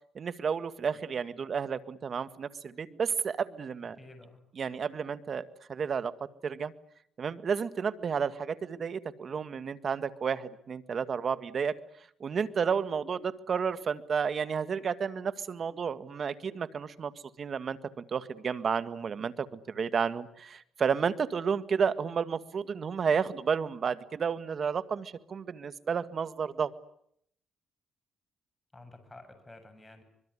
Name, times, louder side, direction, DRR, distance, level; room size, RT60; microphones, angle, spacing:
voice 1, 0.2-4.0 4.6-6.1 6.4-6.7 7.2-11.8 12.2-17.1 17.4-26.7, right 6 dB, 50° right, 13 dB, 1.7 m, -31 dB
voice 2, 3.9-4.4 28.7-30.0, left 2 dB, 15° left, 7 dB, 7.7 m, -51 dB
25.0 x 22.0 x 9.9 m, 0.70 s
cardioid pair, 90°, 0 cm